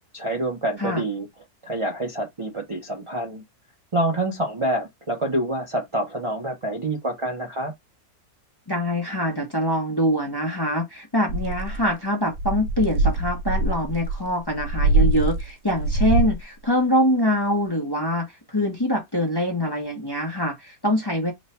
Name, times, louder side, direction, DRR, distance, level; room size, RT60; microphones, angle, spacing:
voice 1, 0.1-1.3 1.6-3.4 3.9-7.7, right 1 dB, 50° right, 0.3 m, -27 dB
voice 2, 8.7-21.3, equal, 25° left, 0.5 m, -24 dB
sound 1, 11.3-11.9 12.3-16.4, right 2 dB, 85° right, 1.2 m, -23 dB
3.1 x 2.2 x 4.1 m
omnidirectional pair, 1.7 m